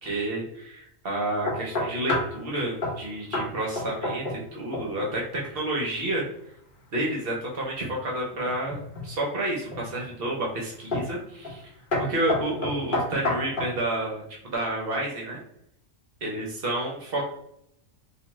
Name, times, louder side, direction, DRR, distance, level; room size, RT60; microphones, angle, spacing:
voice 1, 0.0-6.2 6.9-11.6 12.0-15.4 16.2-17.3, right 1 dB, 55° right, -2 dB, 0.8 m, -30 dB
sound 1, 1.5-2.4 2.8-3.0 3.3-3.5 3.8-4.5 4.7-5.1 8.5-9.1 9.7-10.1 10.9-11.2 11.4-11.6 11.9-13.8, left 2 dB, 45° left, 0.9 m, -28 dB
2.6 x 2.2 x 3.0 m, 0.73 s
omnidirectional pair, 1.4 m